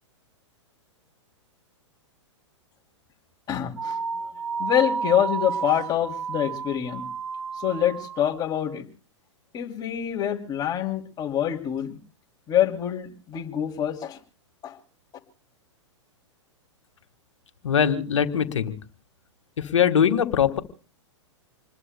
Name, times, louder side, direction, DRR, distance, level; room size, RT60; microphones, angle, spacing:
voice 1, 3.5-4.3 4.6-7.1 7.6-8.9 9.5-12.0 12.5-14.2 14.6-14.8, left 10 dB, 25° left, 2 dB, 2.9 m, -26 dB
sound 1, 3.8-8.4, right 6 dB, 90° right, 0.8 m, -31 dB
voice 2, 17.6-18.8 19.6-20.6, left 8 dB, 75° left, 6 dB, 1.8 m, -21 dB
27.5 x 21.0 x 2.2 m, 0.39 s
hypercardioid pair, 115°, 16 cm